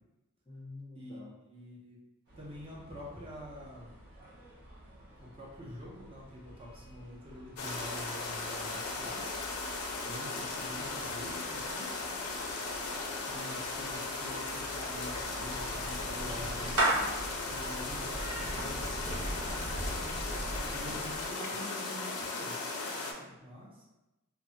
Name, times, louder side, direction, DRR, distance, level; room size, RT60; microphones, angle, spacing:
voice 1, 0.5-1.3 20.2-21.0 22.9-23.6, left 2 dB, 20° left, -7 dB, 0.4 m, -51 dB
voice 2, 1.5-2.0 2.3-3.9 5.2-9.3 9.7-12.1 13.3-17.1 17.4-19.2 20.7-22.7 23.4-23.8, equal, 25° right, -4 dB, 0.6 m, -46 dB
sound 1, 2.2-19.9, right 1 dB, 50° right, 0.9 m, -53 dB
sound 2, 7.6-23.1, left 3 dB, 80° left, 0.5 m, -37 dB
Clapping / Meow, 15.2-21.3, right 1 dB, 75° right, 0.5 m, -36 dB
2.2 x 2.1 x 3.7 m, 1.0 s
head